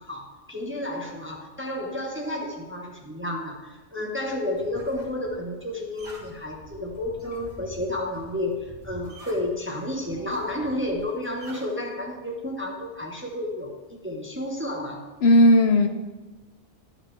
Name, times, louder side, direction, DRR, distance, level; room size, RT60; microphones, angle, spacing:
voice 1, 0.0-15.1, left 1 dB, 10° right, 0 dB, 0.8 m, -31 dB
sound 1, 4.2-11.7, equal, 60° right, 2.5 m, -47 dB
voice 2, 15.2-15.9, left 1 dB, 65° left, 5 dB, 0.8 m, -15 dB
12.0 x 5.1 x 3.3 m, 1.2 s
omnidirectional pair, 1.2 m